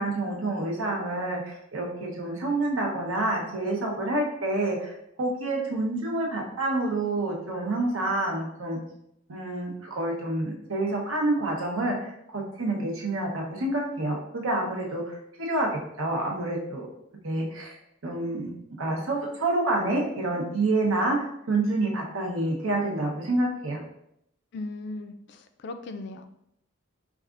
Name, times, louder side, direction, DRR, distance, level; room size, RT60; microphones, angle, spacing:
voice 1, 0.0-8.8 9.3-15.7 16.0-16.9 17.2-17.8 18.0-18.5 18.8-21.2 21.5-23.8, right 2 dB, 80° right, 0 dB, 0.8 m, -28 dB
voice 2, 24.5-26.3, left 2 dB, 55° left, 8 dB, 0.3 m, -37 dB
4.7 x 2.4 x 2.4 m, 0.76 s
head